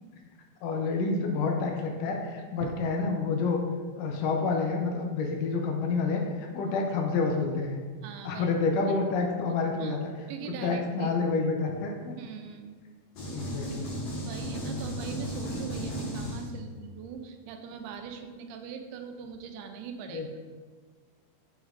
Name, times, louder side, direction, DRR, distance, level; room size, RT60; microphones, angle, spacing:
voice 1, 0.6-3.6 4.0-7.8 8.2-10.1 10.6-12.1 13.3-13.9 20.1-20.4, left 4 dB, 85° left, 2 dB, 1.9 m, -28 dB
voice 2, 8.0-8.5 9.8-10.0 10.3-11.2 12.2-12.8 14.2-20.3, right 7 dB, 85° right, 5 dB, 2.5 m, -41 dB
sound 1, 13.1-16.8, equal, 55° left, 2.0 m, -35 dB
7.7 x 5.2 x 2.5 m, 1.5 s
omnidirectional pair, 4.5 m